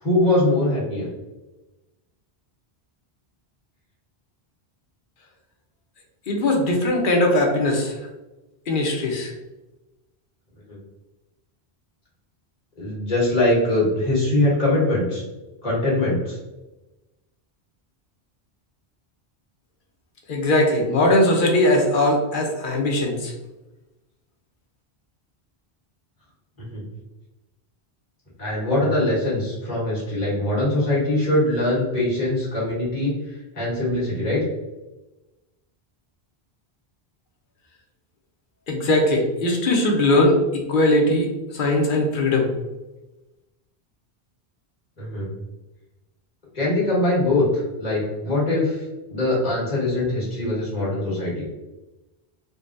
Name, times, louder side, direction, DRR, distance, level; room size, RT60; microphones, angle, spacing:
voice 1, 0.0-1.1 10.7-10.8 12.8-15.2 15.6-16.4 26.6-26.8 28.4-33.1 33.5-34.4 45.0-45.3 46.5-48.8 49.1-51.4, left 1 dB, 40° left, -6 dB, 1.4 m, -22 dB
voice 2, 6.3-7.9 8.7-9.3 20.3-23.3 38.7-41.3 41.5-42.5, left 1 dB, 55° left, 1 dB, 0.8 m, -20 dB
3.8 x 2.2 x 2.5 m, 1.0 s
omnidirectional pair, 1.1 m